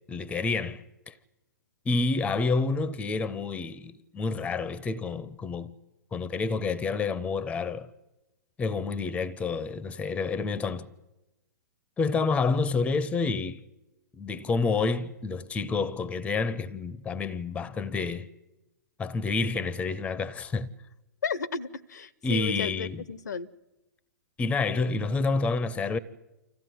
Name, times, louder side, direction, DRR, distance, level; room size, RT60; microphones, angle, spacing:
voice 1, 0.1-1.1 1.9-5.7 6.1-7.9 8.6-10.9 12.0-13.6 14.1-18.3 19.0-20.7 22.2-23.1 24.4-26.0, left 4 dB, 10° left, 0.7 m, -29 dB
voice 2, 21.2-23.5, left 5 dB, 65° left, 0.7 m, -33 dB
25.0 x 15.0 x 9.3 m
figure-of-eight pair, 110°, 10 cm